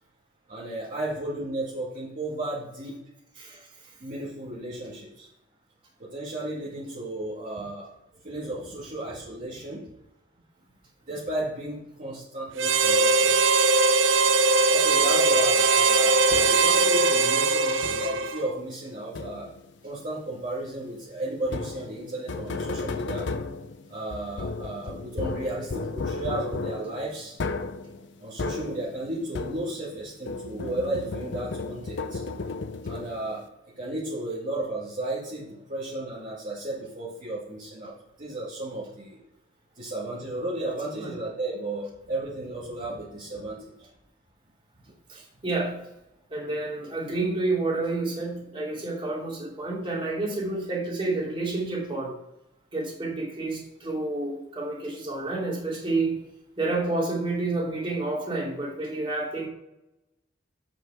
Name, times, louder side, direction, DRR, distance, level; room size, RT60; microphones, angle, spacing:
voice 1, 0.5-3.0 4.0-5.3 6.0-7.9 8.2-10.0 11.1-13.5 14.7-19.5 19.8-23.3 23.9-27.4 28.2-32.2 32.8-37.9 38.2-39.2 39.8-43.9, right 1 dB, 45° right, -7 dB, 2.0 m, -34 dB
Harmonica, 12.6-18.5, right 3 dB, 75° right, 0.6 m, -20 dB
sound 1, 16.3-16.8 17.8-18.3 19.2-19.7 21.4-30.0 30.3-33.4, left 3 dB, 65° left, 0.6 m, -34 dB
voice 2, 45.1-45.8 46.3-52.1 52.7-56.2 56.6-59.5, right 2 dB, 30° right, -4 dB, 2.8 m, -29 dB
8.1 x 5.8 x 4.8 m, 0.87 s
head